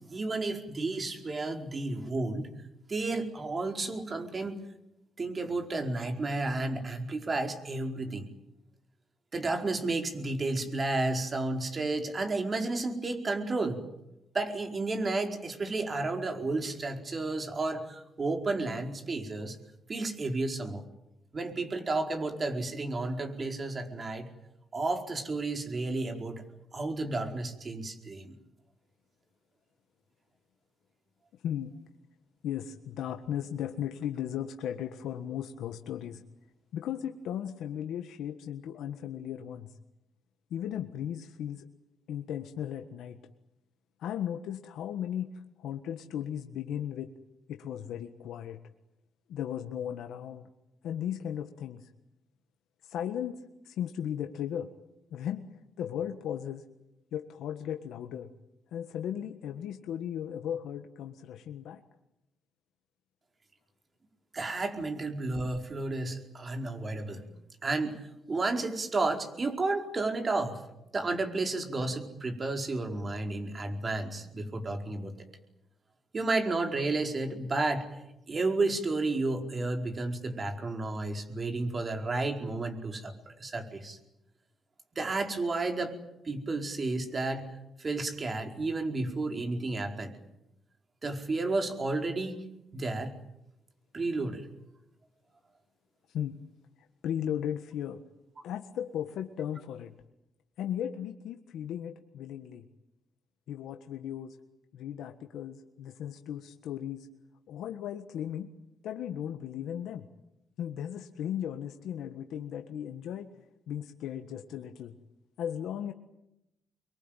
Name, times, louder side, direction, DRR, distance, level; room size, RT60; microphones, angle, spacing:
voice 1, 0.1-2.5 2.9-4.6 5.2-8.3 9.3-13.8 14.3-19.6 19.9-20.8 21.3-24.3 24.7-26.4 26.7-28.3 64.3-67.2 67.6-70.6 70.9-75.1 76.1-77.8 78.3-84.0 84.9-85.9 86.2-87.4 87.8-90.1 91.0-92.4 92.7-93.1 93.9-94.4, right 2 dB, 40° right, 4 dB, 4.8 m, -32 dB
voice 2, 32.4-36.2 36.7-39.7 40.5-41.7 42.1-43.2 44.0-45.3 45.6-47.1 47.5-48.6 49.3-50.5 50.8-51.9 52.8-53.4 53.6-54.7 55.1-55.4 55.8-56.6 57.1-58.3 58.7-61.8 96.1-96.4 97.0-98.0 98.4-99.9 100.6-102.6 103.5-104.4 104.7-107.1 107.5-108.5 108.8-110.1 110.6-113.3 113.7-114.9 115.4-115.9, left 10 dB, 80° left, 6 dB, 1.5 m, -36 dB
25.5 x 23.0 x 9.2 m, 0.87 s
cardioid pair, 70°, 0 cm